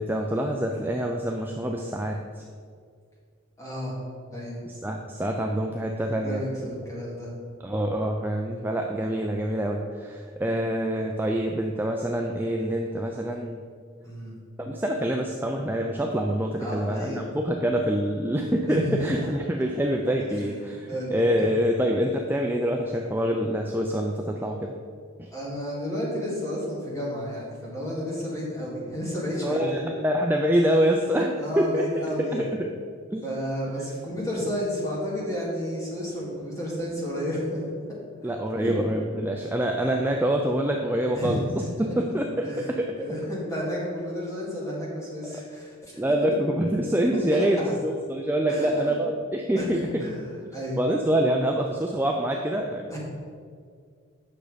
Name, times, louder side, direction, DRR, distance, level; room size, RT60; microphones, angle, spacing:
voice 1, 0.0-2.4 4.7-6.4 7.6-13.6 14.6-24.7 25.2-25.3 29.3-31.8 32.3-32.5 33.1-33.3 33.9-34.0 38.2-41.4 41.8-43.0 46.0-50.0 50.8-52.9, equal, 10° right, 1 dB, 0.4 m, -26 dB
voice 2, 3.6-4.0 4.3-4.6 6.2-7.3 14.0-14.4 16.6-17.3 18.7-19.3 20.2-21.5 25.3-29.6 31.4-32.5 33.2-37.6 38.6-38.7 41.1-41.8 42.4-42.7 43.0-46.4 47.1-47.5 48.5-49.0 49.6-50.8 52.9-53.0, equal, 15° left, -5 dB, 2.3 m, -32 dB
8.7 x 6.4 x 5.1 m, 2.1 s
head